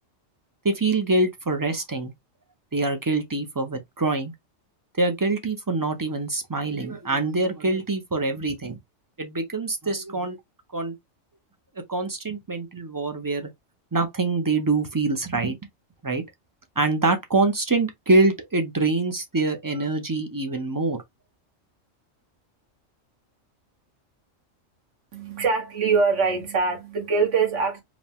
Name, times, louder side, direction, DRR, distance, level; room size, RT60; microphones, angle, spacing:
voice 1, 0.6-2.1 2.7-4.3 5.0-8.8 9.2-10.4 10.7-10.9 11.9-13.5 13.9-15.6 16.0-16.2 16.8-21.0, right 3 dB, 25° right, 0.5 m, -24 dB
voice 2, 25.1-27.8, right 4 dB, 65° right, 1.7 m, -23 dB
4.8 x 2.2 x 3.6 m
omnidirectional pair, 1.4 m